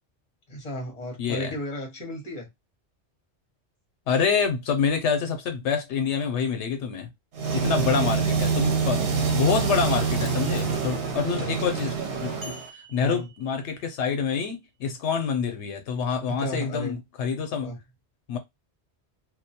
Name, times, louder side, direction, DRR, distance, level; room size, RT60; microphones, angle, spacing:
voice 1, 0.5-2.5 7.6-8.1 8.9-9.0 11.4-11.6 13.0-13.3 16.3-17.0 17.6-17.8, equal, 35° left, 1.1 m, -35 dB
voice 2, 1.2-1.5 4.1-7.1 7.5-9.0 9.3-17.7 18.3-18.4, left 6 dB, 90° left, 0.9 m, -27 dB
sound 1, 7.3-12.7, right 5 dB, 65° right, 0.9 m, -26 dB
sound 2, 12.4-14.3, right 1 dB, 40° right, 1.1 m, -47 dB
2.3 x 2.1 x 2.7 m
omnidirectional pair, 1.1 m